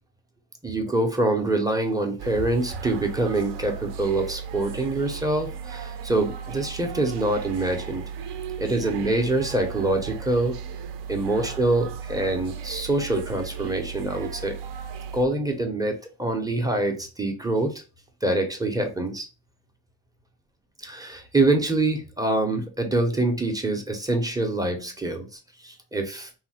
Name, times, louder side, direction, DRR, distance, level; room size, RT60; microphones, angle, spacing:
voice 1, 0.6-8.1 8.6-10.6 11.1-14.6 15.1-17.8 18.2-19.3 20.8-26.4, right 2 dB, 10° right, 4 dB, 0.4 m, -25 dB
sound 1, 2.2-15.2, right 7 dB, 80° right, 0.5 m, -36 dB
3.1 x 2.0 x 2.8 m, 0.33 s
cardioid pair, 135°, 41 cm